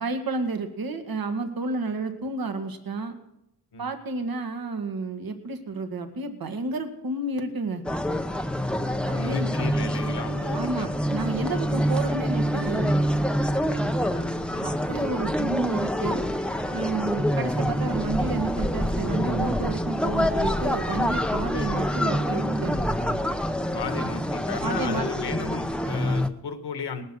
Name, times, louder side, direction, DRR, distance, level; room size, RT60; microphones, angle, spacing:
voice 1, 0.0-3.2 3.8-7.8 9.0-9.5 10.5-13.0 14.6-16.3 16.7-22.8 24.6-25.1, right 3 dB, 55° right, 6 dB, 1.9 m, -31 dB
sound 1, 7.8-26.3, equal, ahead, 0.8 m, -26 dB
voice 2, 9.1-10.9 14.0-14.2 14.5-14.7 23.7-27.0, left 5 dB, 70° left, 8 dB, 1.9 m, -34 dB
19.5 x 12.0 x 6.4 m, 0.84 s
wide cardioid pair, 115°, 41 cm